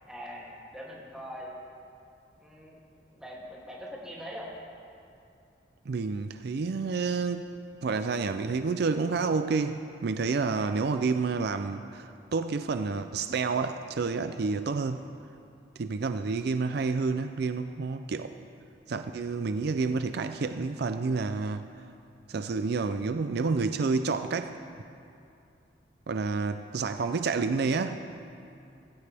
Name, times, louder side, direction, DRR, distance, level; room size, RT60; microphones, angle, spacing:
voice 1, 0.1-1.5 2.4-2.8 3.1-4.5, equal, 5° right, -5 dB, 2.6 m, -42 dB
voice 2, 5.9-7.5 7.8-15.0 15.8-18.3 18.9-21.7 22.3-24.5 26.1-28.0, right 4 dB, 60° right, 9 dB, 0.4 m, -29 dB
17.5 x 16.0 x 3.4 m, 2.6 s
head